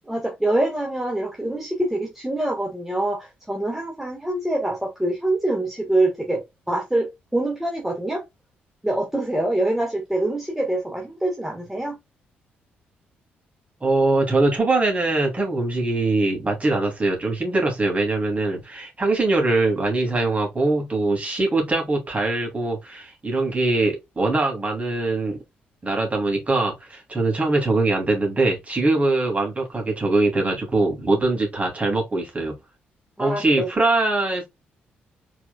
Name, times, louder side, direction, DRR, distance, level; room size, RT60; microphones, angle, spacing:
voice 1, 0.1-8.2 8.8-12.0 33.2-33.7, right 1 dB, 5° right, 1.4 m, -25 dB
voice 2, 13.8-25.4 25.8-32.6 33.2-34.5, right 2 dB, 25° right, 2.9 m, -22 dB
4.8 x 4.4 x 2.3 m
figure-of-eight pair, 40°, 5 cm